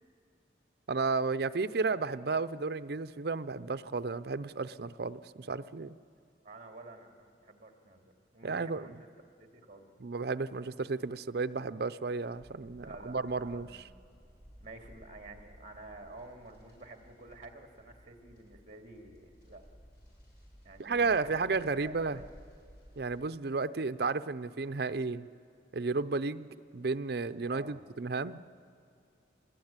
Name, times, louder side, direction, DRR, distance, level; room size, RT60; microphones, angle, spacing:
voice 1, 0.9-5.9 8.4-9.0 10.0-13.8 20.8-22.2 23.0-25.3 25.7-26.5 26.7-28.4, right 4 dB, 60° right, 12 dB, 0.6 m, -33 dB
voice 2, 6.4-9.1 9.4-9.9 12.8-13.9 14.6-19.6 20.6-22.3 27.5-27.8, right 2 dB, 40° right, 3 dB, 2.4 m, -50 dB
sound 1, 12.3-23.2, equal, 65° left, 7.5 m, -57 dB
25.5 x 20.0 x 8.9 m, 2.4 s
head